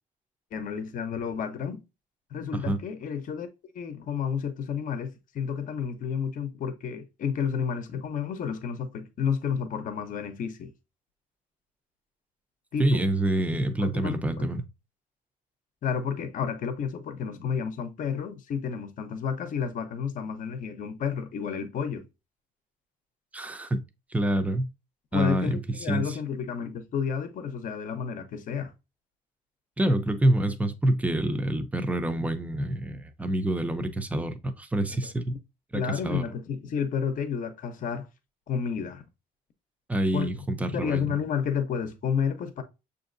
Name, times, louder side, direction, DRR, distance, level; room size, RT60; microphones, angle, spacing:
voice 1, 0.5-1.8 2.3-3.5 3.7-10.7 12.7-13.0 13.8-14.5 15.8-22.0 25.1-28.7 35.7-38.1 38.5-39.0 40.1-40.3 40.7-42.6, left 7 dB, 50° left, 0.7 m, -31 dB
voice 2, 12.8-14.6 23.3-23.8 24.1-24.7 25.1-25.6 25.9-26.2 29.8-35.3 35.7-36.2 39.9-41.2, right 1 dB, 10° right, 0.6 m, -27 dB
6.3 x 2.7 x 2.6 m
cardioid pair, 110°, 17 cm